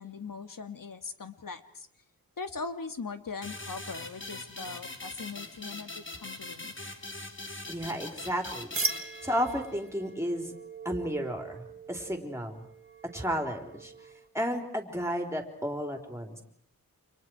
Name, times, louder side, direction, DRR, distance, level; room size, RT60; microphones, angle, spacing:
voice 1, 0.0-1.9 2.4-6.7, left 4 dB, 60° left, 9 dB, 2.0 m, -40 dB
sound 1, 3.4-9.8, left 2 dB, 30° left, 2.8 m, -42 dB
voice 2, 7.7-10.5 10.8-12.7 13.1-13.9 14.3-16.4, equal, 5° right, 3 dB, 4.0 m, -33 dB
sound 2, 8.7-14.3, right 3 dB, 35° right, 1.9 m, -39 dB
30.0 x 26.5 x 4.8 m, 0.71 s
wide cardioid pair, 95°, 36 cm